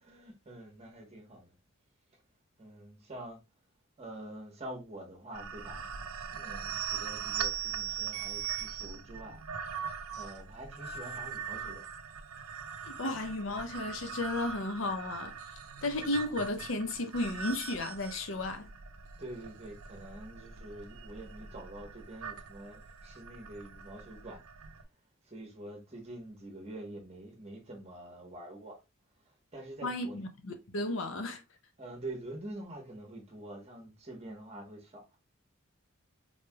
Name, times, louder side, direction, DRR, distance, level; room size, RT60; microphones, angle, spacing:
voice 1, 0.0-1.5 2.6-3.4 4.0-9.4 10.2-11.9 19.2-24.4 25.2-28.8 29.2-30.2 31.8-35.2, right 1 dB, 30° right, 1.1 m, -46 dB
sound 1, 5.3-24.8, right 8 dB, 80° right, 0.5 m, -41 dB
voice 2, 12.8-15.4 15.8-18.7 29.8-30.1 30.4-31.4, left 2 dB, 60° left, 0.5 m, -34 dB
3.9 x 3.3 x 2.2 m
head